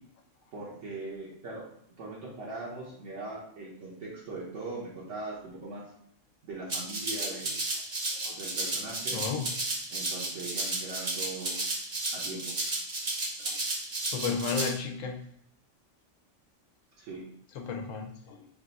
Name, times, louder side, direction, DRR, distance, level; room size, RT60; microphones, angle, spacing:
voice 1, 0.5-1.6 2.0-5.8 6.4-7.6 8.3-9.2 9.9-11.7 12.1-12.6 17.0-17.2, right 3 dB, 75° right, -6 dB, 1.1 m, -40 dB
Rattle (instrument), 6.7-14.7, right 2 dB, 40° right, 0.8 m, -33 dB
voice 2, 9.1-9.5 13.4-13.6 14.1-15.2 17.5-18.5, left 5 dB, 85° left, 3 dB, 1.0 m, -33 dB
3.4 x 2.4 x 4.0 m, 0.70 s
omnidirectional pair, 1.3 m